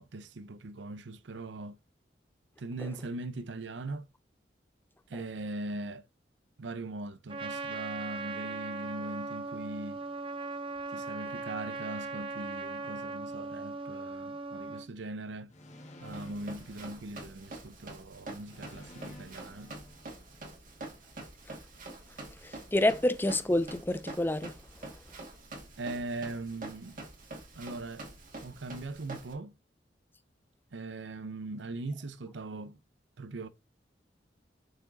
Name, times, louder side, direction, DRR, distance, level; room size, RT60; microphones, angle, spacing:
voice 1, 0.0-1.8 2.6-4.1 5.1-6.0 6.6-10.0 10.9-15.5 16.0-19.7 25.8-27.0 27.6-28.1 28.4-29.5 30.7-32.8 33.2-33.5, right 2 dB, 90° right, 0.7 m, -40 dB
Trumpet, 7.3-14.9, right 3 dB, 30° right, 0.7 m, -38 dB
sound 1, 15.5-17.7 18.4-20.6, left 1 dB, 40° left, 1.6 m, -51 dB
Run, 16.1-29.3, right 2 dB, 50° right, 2.4 m, -46 dB
voice 2, 22.4-24.5, left 1 dB, 10° left, 0.5 m, -28 dB
6.4 x 4.7 x 3.9 m
head